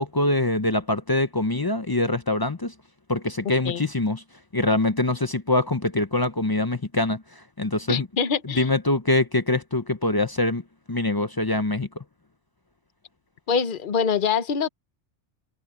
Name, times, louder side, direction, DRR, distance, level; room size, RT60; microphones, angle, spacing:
voice 1, 0.0-2.7 3.1-4.2 4.5-7.2 7.6-8.1 8.4-10.6 10.9-12.0, left 2 dB, 25° left, 0.5 m, -24 dB
voice 2, 7.9-8.7 13.5-14.7, left 6 dB, 45° left, 1.1 m, -24 dB
omnidirectional pair, 1.3 m